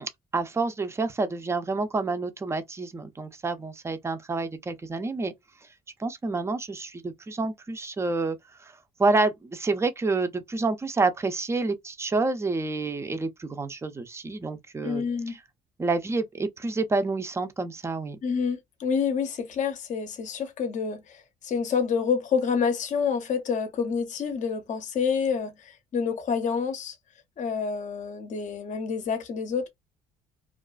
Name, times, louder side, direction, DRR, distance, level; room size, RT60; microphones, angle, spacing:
voice 1, 0.0-5.3 6.0-8.4 9.0-15.4 15.8-18.2, right 3 dB, 15° right, 0.4 m, -28 dB
voice 2, 14.8-15.4 18.2-27.0 27.4-29.7, left 6 dB, 45° left, 0.6 m, -28 dB
2.4 x 2.2 x 2.3 m
cardioid pair, 110°, 17 cm